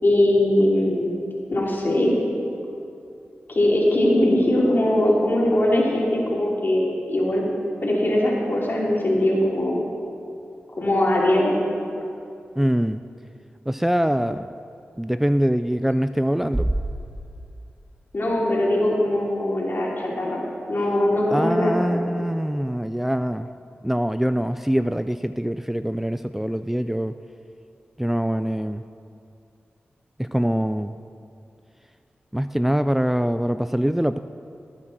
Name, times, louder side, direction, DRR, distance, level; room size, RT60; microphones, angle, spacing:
voice 1, 0.0-1.1 1.5-2.1 3.5-7.4 7.8-9.8 10.7-11.6 18.1-20.4 20.7-22.0, left 1 dB, 55° left, -4 dB, 3.5 m, -21 dB
voice 2, 12.6-13.0 13.7-14.5 15.0-16.7 21.3-23.5 23.8-27.2 28.0-28.8 30.2-30.9 32.3-34.2, equal, 5° right, 10 dB, 0.3 m, -23 dB
Bass drum, 16.5-18.2, right 1 dB, 25° right, 1.2 m, -28 dB
19.0 x 8.6 x 4.4 m, 2.5 s
cardioid pair, 50°, 4 cm